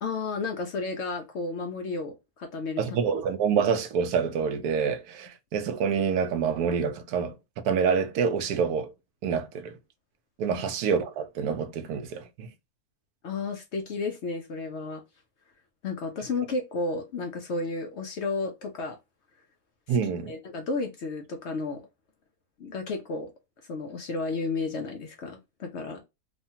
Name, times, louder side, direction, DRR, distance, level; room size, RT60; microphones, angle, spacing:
voice 1, 0.0-3.0 10.5-10.6 13.2-15.0 15.8-19.0 19.9-20.0 20.3-21.9 22.6-23.3 23.7-26.0, left 3 dB, 65° left, 0.7 m, -32 dB
voice 2, 2.8-8.9 9.2-9.7 10.4-12.5 19.9-20.3, right 6 dB, 85° right, 1.1 m, -27 dB
3.1 x 2.2 x 2.7 m
omnidirectional pair, 1.6 m